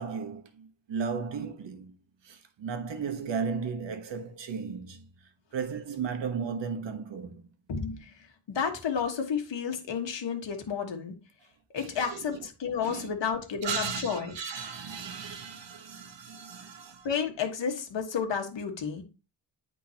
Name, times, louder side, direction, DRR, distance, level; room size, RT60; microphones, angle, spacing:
voice 1, 0.0-2.0 2.2-5.1 5.5-7.5 11.8-12.5 12.8-13.3 13.6-17.1, right 6 dB, 70° right, 1.1 m, -35 dB
voice 2, 8.5-11.1 11.7-14.3 17.0-19.0, left 6 dB, 70° left, 1.4 m, -31 dB
10.0 x 3.7 x 2.8 m
wide cardioid pair, 100°, 45 cm